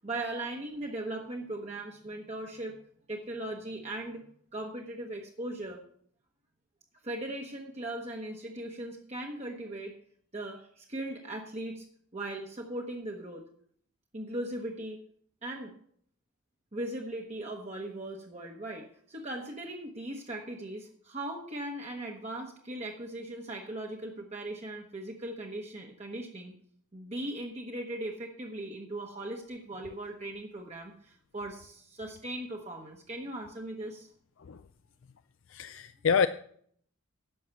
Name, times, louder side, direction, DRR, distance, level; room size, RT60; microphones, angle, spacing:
voice 1, 0.0-2.8 3.1-4.2 4.5-5.8 7.0-10.0 10.3-11.9 12.1-13.4 14.1-15.0 15.4-15.7 16.7-26.5 26.9-34.1, right 1 dB, 30° right, 1 dB, 1.0 m, -39 dB
voice 2, 35.5-36.3, left 6 dB, 60° left, 11 dB, 0.4 m, -26 dB
11.0 x 6.4 x 6.9 m, 0.62 s
head